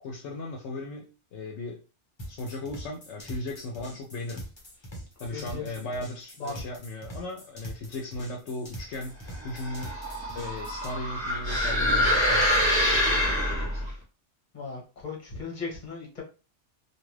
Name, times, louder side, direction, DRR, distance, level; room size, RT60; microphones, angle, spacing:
voice 1, 0.0-1.8 2.3-4.4 5.2-9.9 10.3-13.9, left 2 dB, 75° left, 1 dB, 0.8 m, -37 dB
sound 1, 2.2-10.9, equal, 25° left, 0.9 m, -43 dB
voice 2, 5.3-6.0 6.4-6.6 13.7-14.0 14.5-16.2, left 4 dB, 45° left, -1 dB, 1.2 m, -38 dB
sound 2, 9.5-13.9, left 1 dB, 30° right, 0.7 m, -25 dB
2.7 x 2.4 x 3.1 m, 0.34 s
omnidirectional pair, 1.2 m